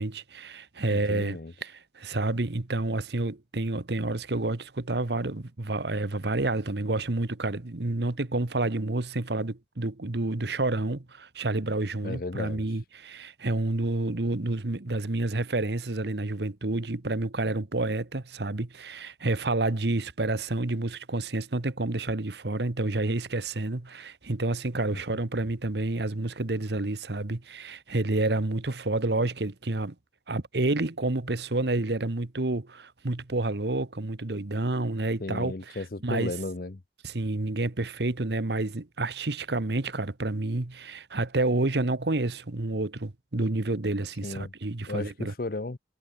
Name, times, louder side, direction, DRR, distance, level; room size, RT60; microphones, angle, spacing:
voice 1, 0.0-29.9 30.3-35.5 36.0-36.3 37.0-45.3, right 2 dB, 70° right, 1.2 m, -29 dB
voice 2, 0.9-1.5 12.0-12.6 35.2-36.8 44.2-44.5 44.9-45.8, left 2 dB, 55° left, 0.7 m, -34 dB
head